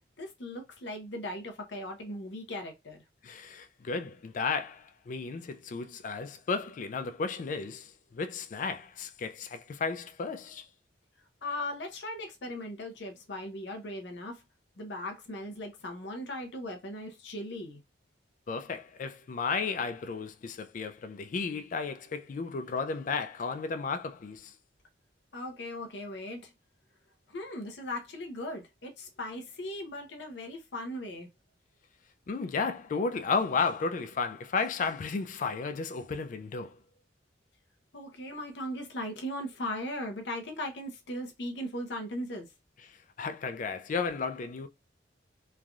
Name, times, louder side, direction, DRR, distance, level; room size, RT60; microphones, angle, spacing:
voice 1, 0.0-3.0 11.4-14.4 14.8-17.8 25.3-26.5 27.3-31.3 37.9-42.5, left 1 dB, 65° left, 0.7 m, -38 dB
voice 2, 3.2-10.7 18.5-24.5 32.3-36.8 42.9-44.7, left 4 dB, 45° left, 0.3 m, -33 dB
3.2 x 2.5 x 2.2 m
head